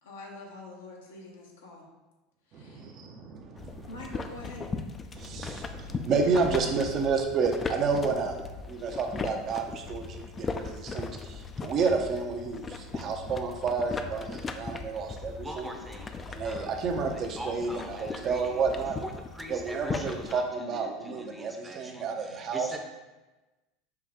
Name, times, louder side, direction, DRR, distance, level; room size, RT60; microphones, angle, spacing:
voice 1, 0.0-1.8 2.5-2.9 3.9-4.7, left 2 dB, 85° left, -1 dB, 1.0 m, -45 dB
voice 2, 2.5-3.9 5.1-8.4 8.7-15.7 16.3-19.0 19.5-22.7, right 4 dB, 45° right, 3 dB, 0.6 m, -30 dB
sound 1, 3.6-20.4, left 4 dB, 25° left, 0.4 m, -38 dB
voice 3, 15.2-16.1 16.4-16.7 17.1-18.6 19.0-22.8, right 1 dB, 5° right, 3 dB, 0.7 m, -42 dB
5.6 x 2.3 x 3.6 m, 1.1 s
hypercardioid pair, 85°, 0 cm